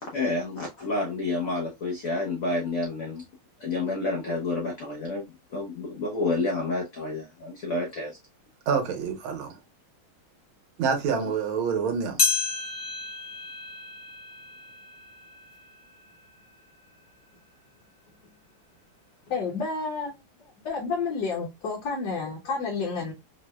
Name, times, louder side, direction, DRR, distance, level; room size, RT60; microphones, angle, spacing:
voice 1, 0.0-3.2 3.6-8.2 11.1-11.3, left 2 dB, 85° left, 0.7 m, -29 dB
voice 2, 8.7-9.6 10.8-12.2, right 6 dB, 75° right, 1.6 m, -27 dB
sound 1, 12.2-16.8 17.3-17.4 18.2-18.3 19.3-19.4, left 4 dB, 45° left, 0.9 m, -32 dB
voice 3, 19.3-20.1 20.6-23.1, left 4 dB, 60° left, 1.2 m, -30 dB
4.6 x 2.0 x 2.2 m
omnidirectional pair, 2.3 m